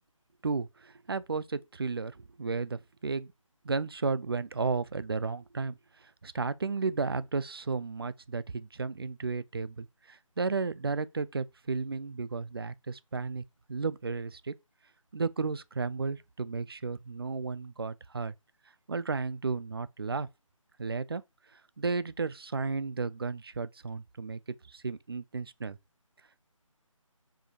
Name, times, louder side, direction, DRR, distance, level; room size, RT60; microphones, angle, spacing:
voice 1, 0.4-3.3 3.6-5.8 6.2-13.4 13.7-14.5 15.1-18.3 18.9-20.3 20.8-21.2 21.8-24.4 24.7-25.8, right 4 dB, 45° right, 0.5 m, -33 dB
5.1 x 5.0 x 5.0 m
figure-of-eight pair, 155°, 17 cm